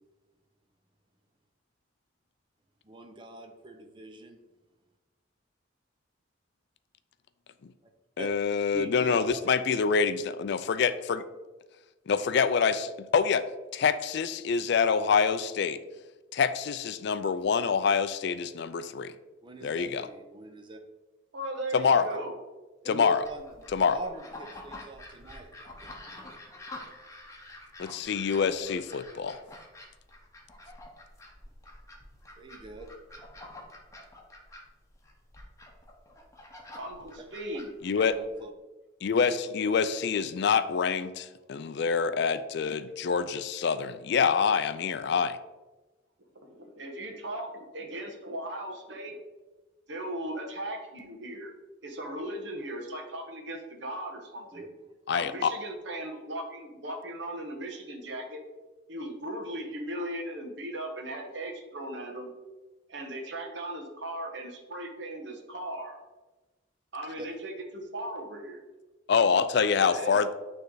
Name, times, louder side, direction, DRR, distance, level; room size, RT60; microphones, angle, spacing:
voice 1, 2.8-4.4 8.2-8.3 8.7-9.5 19.4-20.8 22.0-22.1 22.8-23.6 23.9-25.9 32.4-32.9 38.0-38.5 54.5-54.7 67.2-67.3, right 2 dB, 25° right, 4 dB, 0.6 m, -43 dB
voice 2, 8.2-11.2 12.1-13.5 13.7-15.8 16.3-19.1 19.6-20.1 21.7-22.1 22.9-23.2 23.7-24.0 27.8-29.4 37.8-38.2 39.0-45.4 55.1-55.5 69.1-70.3, left 6 dB, 60° left, 13 dB, 0.4 m, -26 dB
voice 3, 21.3-22.4 36.8-37.7 46.4-49.1 49.9-51.5 51.8-54.6 55.1-58.4 58.9-62.3 62.9-66.0 66.9-68.6 69.8-70.2, right 1 dB, 65° right, 2 dB, 1.2 m, -38 dB
sound 1, 23.2-38.4, left 2 dB, 15° left, 1.0 m, -48 dB
9.3 x 3.3 x 3.9 m, 1.1 s
head